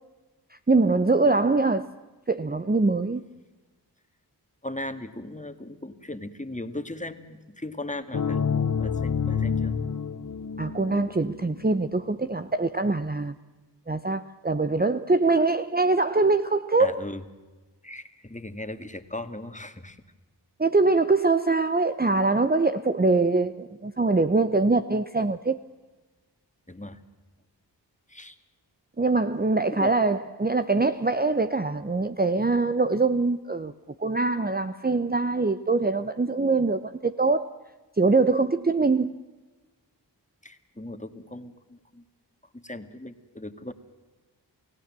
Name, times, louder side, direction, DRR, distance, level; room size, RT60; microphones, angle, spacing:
voice 1, 0.7-1.9 2.3-3.2 10.6-13.4 13.9-17.1 20.6-25.6 29.0-33.7 34.0-37.6 38.0-39.1, right 3 dB, 20° right, 0.8 m, -23 dB
voice 2, 4.6-9.7 16.8-17.2 17.8-20.0 26.7-27.0 28.1-28.4 29.7-29.9 40.4-42.0 42.5-43.7, left 1 dB, 15° left, 2.0 m, -38 dB
sound 1, 8.1-11.8, left 6 dB, 45° left, 0.9 m, -28 dB
29.0 x 16.5 x 7.6 m
cardioid pair, 40°, 43 cm